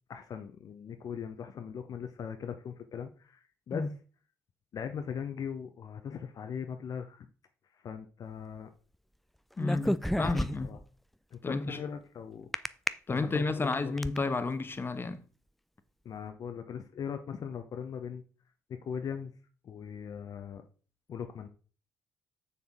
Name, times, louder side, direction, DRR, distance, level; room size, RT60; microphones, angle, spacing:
voice 1, 0.1-3.9 4.7-7.3 7.7-8.7 10.0-10.3 10.6-10.8 11.3-12.5 13.1-14.0 16.0-18.2 18.8-19.3 19.6-20.6 21.1-21.5, left 7 dB, 55° left, 0.8 m, -40 dB
voice 2, 9.6-10.8 11.4-11.8 13.1-15.2, left 3 dB, 30° left, 1.0 m, -31 dB
sound 1, 9.6-10.8 12.5-12.9 13.5-14.2, equal, ahead, 0.4 m, -30 dB
6.9 x 6.4 x 3.6 m
hypercardioid pair, 45°, 8 cm